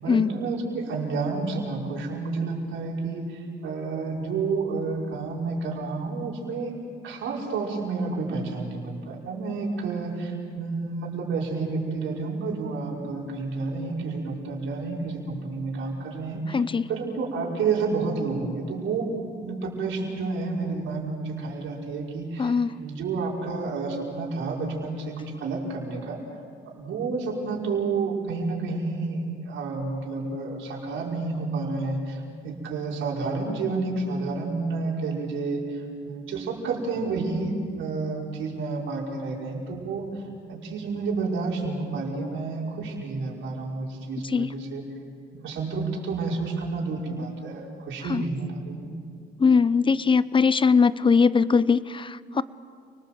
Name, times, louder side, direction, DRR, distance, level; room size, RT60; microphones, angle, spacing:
voice 1, 0.0-6.8 7.0-16.6 16.9-26.2 26.7-40.2 40.5-44.8 45.3-48.9, right 4 dB, 80° right, -3 dB, 5.4 m, -30 dB
voice 2, 16.5-16.9 22.4-22.8 44.3-44.5 48.1-48.2 49.4-52.4, left 5 dB, 25° left, 17 dB, 0.7 m, -21 dB
30.0 x 20.0 x 7.7 m, 2.2 s
cardioid pair, 90°, 20 cm